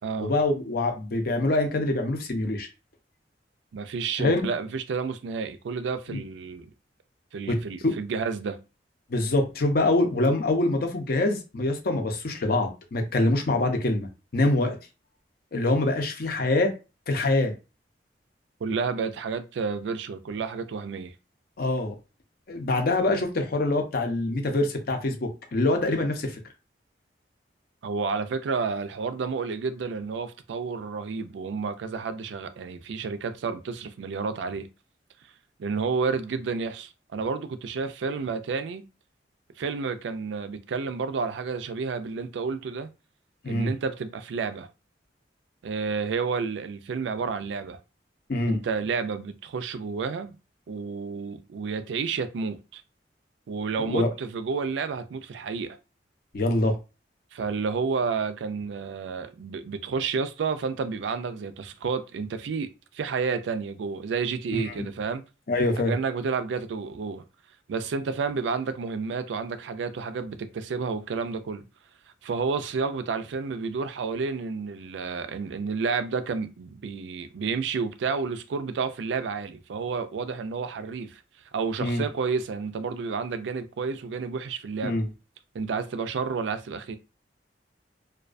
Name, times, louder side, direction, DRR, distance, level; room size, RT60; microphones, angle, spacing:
voice 1, 0.2-2.7 4.2-4.5 6.1-6.2 7.5-8.0 9.1-14.1 14.3-14.8 15.5-16.7 17.1-17.5 21.6-21.9 22.5-26.4 43.4-43.7 48.3-48.6 53.9-54.1 56.3-56.8 64.5-64.6 65.5-65.9 81.8-82.1 84.8-85.1, left 2 dB, 60° left, 0.6 m, -25 dB
voice 2, 3.7-6.7 7.3-8.6 18.6-21.1 27.8-34.7 35.6-38.9 39.6-42.9 43.5-44.7 45.6-47.8 48.5-50.3 50.7-52.8 53.5-55.8 57.3-62.7 62.9-65.3 65.9-67.2 67.7-71.6 72.2-81.2 81.5-85.0 85.5-87.0, right 5 dB, 90° right, 0.3 m, -30 dB
2.3 x 2.2 x 2.4 m
head